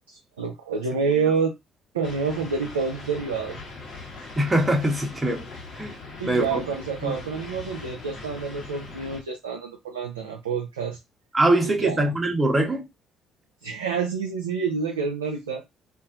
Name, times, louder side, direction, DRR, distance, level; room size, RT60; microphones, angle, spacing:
voice 1, 0.1-1.5 1.9-3.6 6.2-11.0 11.6-12.1 13.6-15.6, right 5 dB, 90° right, 0.3 m, -28 dB
sound 1, 2.0-9.2, left 3 dB, 55° left, 1.1 m, -41 dB
voice 2, 4.4-5.5 5.7-6.0 6.2-6.6 7.0-7.1 11.3-12.8, right 1 dB, 20° right, 0.9 m, -22 dB
2.6 x 2.4 x 2.4 m
hypercardioid pair, 50°, 0 cm